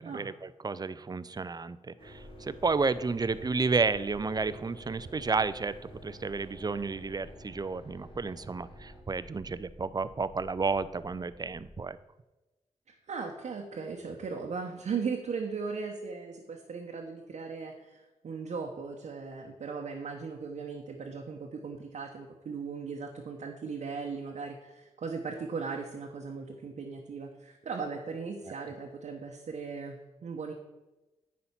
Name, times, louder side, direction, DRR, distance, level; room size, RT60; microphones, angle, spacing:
voice 1, 0.0-5.7 6.0-12.0, right 4 dB, 30° right, 16 dB, 0.5 m, -31 dB
sound 1, 2.0-9.0, equal, 45° left, 2.2 m, -51 dB
sound 2, 2.0-11.8, left 1 dB, 25° left, 2.1 m, -54 dB
voice 2, 12.9-30.5, right 5 dB, 65° right, 1 dB, 1.0 m, -38 dB
9.6 x 4.2 x 5.8 m, 1.1 s
supercardioid pair, 40°, 13 cm